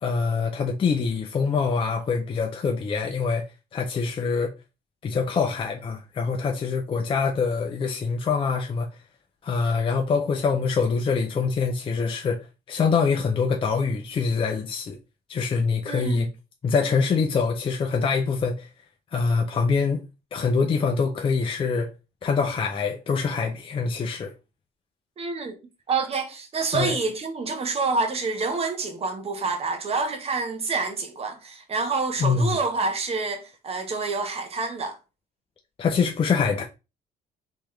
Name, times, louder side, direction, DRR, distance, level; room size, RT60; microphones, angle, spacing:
voice 1, 0.0-3.5 3.7-4.5 5.0-8.9 9.4-15.0 15.3-16.3 16.6-18.7 19.1-21.9 22.2-24.3 26.7-27.0 32.2-32.6 35.8-36.6, left 5 dB, 30° left, 0.5 m, -24 dB
voice 2, 15.9-16.3 25.2-25.6 25.9-35.0, right 4 dB, 35° right, 1.0 m, -27 dB
3.5 x 3.0 x 3.2 m
cardioid pair, 110°, 17 cm